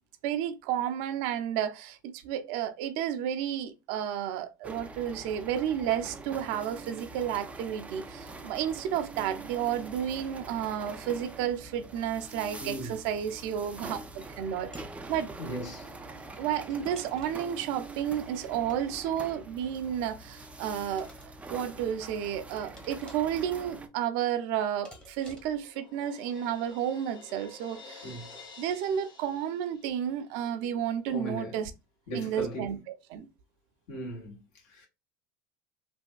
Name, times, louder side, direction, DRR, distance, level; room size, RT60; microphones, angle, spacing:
voice 1, 0.2-14.7 15.1-15.3 16.4-21.1 21.5-28.1 28.6-31.7 32.1-32.8 33.1-33.3, right 9 dB, 65° right, 0.5 m, -32 dB
sound 1, 4.6-23.9, right 3 dB, 10° right, 0.4 m, -44 dB
voice 2, 12.6-13.0 13.6-13.7 15.4-16.0 28.0-28.3 31.1-31.7 32.1-32.8 33.9-34.9, equal, 60° left, 1.9 m, -38 dB
sound 2, 14.7-15.0 16.7-17.5 18.6-19.4 20.7-21.3 22.8-23.4 24.8-25.6, left 1 dB, 10° left, 1.0 m, -52 dB
Crash cymbal, 24.9-30.4, left 3 dB, 40° left, 1.3 m, -51 dB
3.4 x 2.7 x 2.3 m
supercardioid pair, 110°, 11 cm